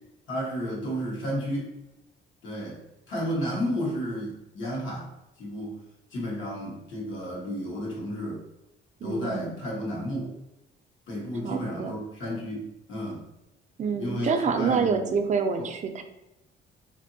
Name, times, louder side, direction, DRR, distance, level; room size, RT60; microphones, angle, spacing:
voice 1, 0.3-1.8 2.4-5.1 5.4-5.8 6.1-8.4 9.0-10.3 11.1-13.2 14.0-15.2 15.6-15.7, equal, 80° left, -4 dB, 1.1 m, -32 dB
voice 2, 9.0-9.5 11.4-11.9 13.8-16.0, right 5 dB, 35° right, 5 dB, 0.4 m, -27 dB
2.9 x 2.6 x 2.6 m, 0.93 s
cardioid pair, 90°, 20 cm